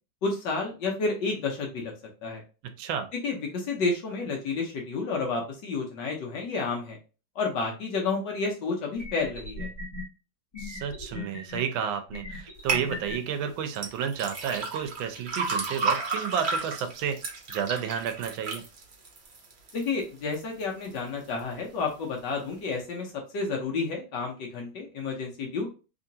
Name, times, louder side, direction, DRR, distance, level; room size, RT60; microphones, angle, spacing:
voice 1, 0.2-1.9 2.2-2.4 3.2-7.0 7.4-9.7 19.7-25.7, left 4 dB, 70° left, 0 dB, 1.4 m, -30 dB
voice 2, 2.8-3.1 10.6-18.6, right 8 dB, 90° right, 8 dB, 1.4 m, -31 dB
sound 1, 9.0-10.0 10.5-11.6 12.1-13.2, left 3 dB, 25° left, 1.1 m, -38 dB
sound 2, 12.7-12.9 13.8-19.9 20.3-20.9 21.3-21.4, right 4 dB, 50° right, 0.8 m, -32 dB
3.7 x 3.0 x 2.7 m, 0.33 s
omnidirectional pair, 2.1 m